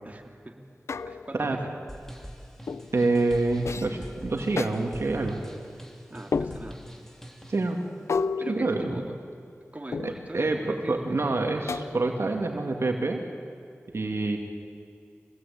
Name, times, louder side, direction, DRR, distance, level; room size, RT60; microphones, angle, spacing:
voice 1, 0.0-0.6 1.0-1.7 6.1-6.8 8.4-9.1 9.7-11.2, right 1 dB, 30° right, 1 dB, 2.7 m, -41 dB
sound 1, 0.9-1.5 2.7-3.0 3.7-4.0 4.6-4.7 6.3-6.9 8.1-9.4 9.9-10.4 11.7-12.3, left 5 dB, 85° left, 0.6 m, -32 dB
sound 2, 1.9-7.7, equal, 10° left, 3.3 m, -44 dB
voice 2, 2.9-5.4 7.5-7.8 8.5-8.9 10.0-13.2 13.9-14.4, right 2 dB, 70° right, 2 dB, 2.6 m, -27 dB
25.5 x 18.5 x 8.8 m, 2.3 s
cardioid pair, 45°, 5 cm